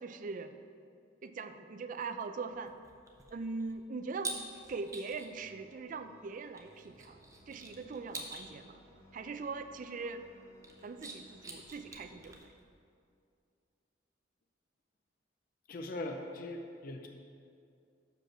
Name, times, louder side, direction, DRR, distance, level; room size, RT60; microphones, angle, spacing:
voice 1, 0.0-0.6 1.2-2.7 3.3-4.3 4.7-7.2 7.5-8.8 9.1-10.2 10.8-12.4, right 4 dB, 45° right, 9 dB, 0.4 m, -41 dB
sound 1, 2.5-5.4 6.5-8.5 10.5-12.7, right 3 dB, 15° right, 0.7 m, -46 dB
sound 2, 5.2-12.4, equal, 15° left, 1.0 m, -61 dB
voice 2, 15.7-17.1, left 2 dB, 50° left, 4 dB, 0.5 m, -40 dB
6.4 x 5.2 x 5.9 m, 2.4 s
head